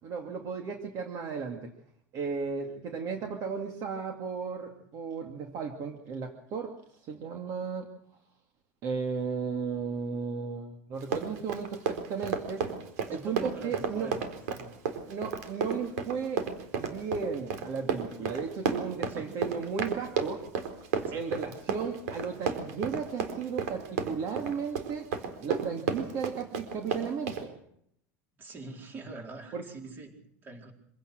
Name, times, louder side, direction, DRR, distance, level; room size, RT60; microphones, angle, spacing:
voice 1, 0.0-1.7 2.1-6.7 7.0-7.9 8.8-12.6 13.1-14.1 15.1-16.4 16.7-20.4 21.1-25.1 25.4-27.5 29.5-29.6, right 5 dB, 45° right, 4 dB, 2.5 m, -35 dB
Run, 11.0-27.4, right 7 dB, 90° right, 4.2 m, -32 dB
voice 2, 13.1-14.3 14.5-14.7 19.2-19.4 21.0-21.4 28.4-30.7, right 2 dB, 25° right, 3 dB, 4.3 m, -44 dB
26.0 x 17.5 x 6.5 m, 0.70 s
supercardioid pair, 155°, 8 cm